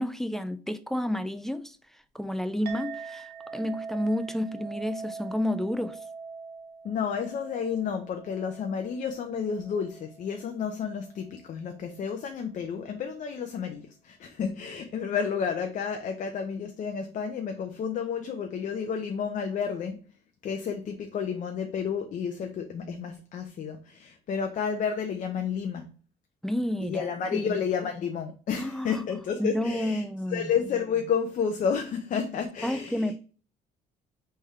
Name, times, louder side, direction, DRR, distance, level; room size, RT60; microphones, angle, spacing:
voice 1, 0.0-1.8 2.1-6.0 26.4-27.5 28.5-29.0 29.4-30.5 32.6-33.2, left 1 dB, ahead, 0.4 m, -30 dB
Chink clink, 2.6-11.4, right 5 dB, 75° right, 1.0 m, -43 dB
voice 2, 6.8-20.0 20.4-25.9 26.8-33.1, left 6 dB, 50° left, 0.6 m, -31 dB
3.6 x 3.3 x 4.1 m
cardioid pair, 110°, 17 cm